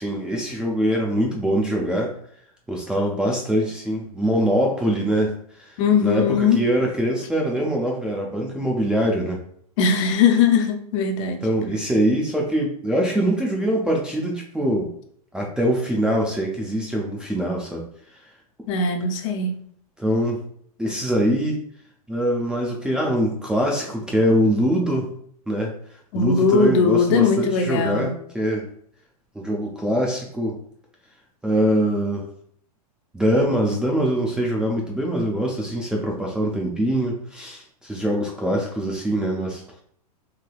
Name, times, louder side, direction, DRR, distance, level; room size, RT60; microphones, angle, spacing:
voice 1, 0.0-2.1 2.7-5.7 6.0-9.4 11.4-14.9 15.3-17.8 20.0-20.4 20.8-21.6 22.1-25.1 25.5-25.7 26.1-28.7 29.3-30.6 31.4-32.3 33.1-39.6, right 1 dB, 5° right, -3 dB, 0.3 m, -23 dB
voice 2, 5.8-6.6 9.8-11.4 18.7-19.6 26.1-28.1, left 5 dB, 50° left, 5 dB, 0.5 m, -19 dB
3.3 x 2.7 x 2.2 m, 0.64 s
hypercardioid pair, 130°, 20 cm